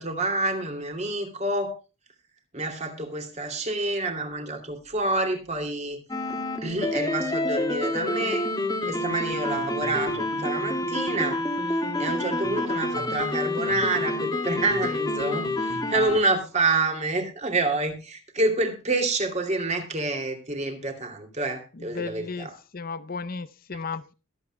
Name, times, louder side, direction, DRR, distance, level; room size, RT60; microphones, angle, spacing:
voice 1, 0.0-1.7 2.5-6.0 6.6-8.5 8.9-22.6, right 2 dB, 30° right, 2.7 m, -28 dB
sound 1, 6.1-16.2, left 1 dB, 20° left, 1.8 m, -28 dB
voice 2, 21.9-24.1, left 4 dB, 45° left, 0.6 m, -34 dB
21.5 x 8.3 x 2.2 m
head